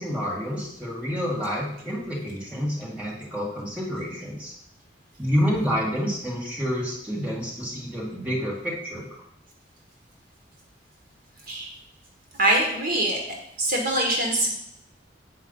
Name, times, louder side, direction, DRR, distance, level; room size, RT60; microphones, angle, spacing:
voice 1, 0.0-4.5 5.2-9.1, equal, 10° right, -5 dB, 1.9 m, -28 dB
voice 2, 12.4-13.2 13.6-14.5, right 1 dB, 50° right, 0 dB, 1.5 m, -23 dB
8.6 x 4.8 x 5.4 m, 0.76 s
head